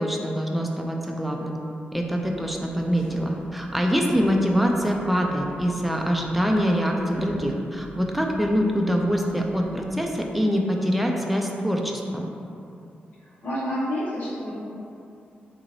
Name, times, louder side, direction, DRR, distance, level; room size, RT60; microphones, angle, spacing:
voice 1, 0.0-1.6 1.9-12.3, equal, ahead, 1 dB, 0.3 m, -24 dB
sound 1, 1.9-10.0, equal, 20° right, 0.9 m, -44 dB
voice 2, 13.4-14.5, equal, 65° left, -9 dB, 1.2 m, -28 dB
3.7 x 2.5 x 3.0 m, 2.6 s
wide cardioid pair, 100°, 4 cm